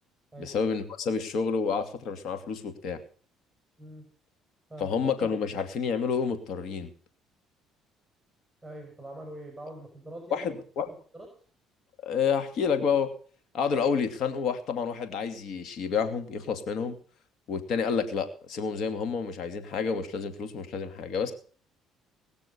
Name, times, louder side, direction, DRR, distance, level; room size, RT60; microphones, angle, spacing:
voice 1, 0.4-3.0 4.8-6.9 10.3-10.9 12.0-13.1 13.5-17.0 17.5-21.3, left 6 dB, 65° left, 8 dB, 2.5 m, -29 dB
voice 2, 8.6-10.6 11.1-11.3, right 1 dB, 5° right, 3 dB, 5.5 m, -43 dB
20.0 x 6.8 x 7.0 m, 0.43 s
supercardioid pair, 80°, 0 cm